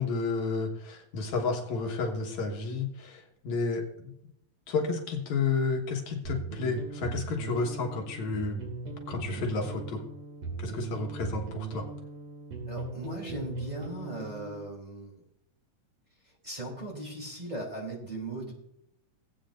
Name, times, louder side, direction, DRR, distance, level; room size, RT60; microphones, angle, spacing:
voice 1, 0.0-4.1 4.7-8.6 9.1-10.0 10.6-11.9, left 4 dB, 75° left, 2 dB, 2.7 m, -31 dB
sound 1, 6.2-14.7, right 3 dB, 55° right, 3.4 m, -39 dB
voice 2, 12.7-15.1 16.4-18.5, right 1 dB, 15° right, -3 dB, 3.2 m, -38 dB
18.5 x 8.6 x 2.5 m, 0.77 s
omnidirectional pair, 3.4 m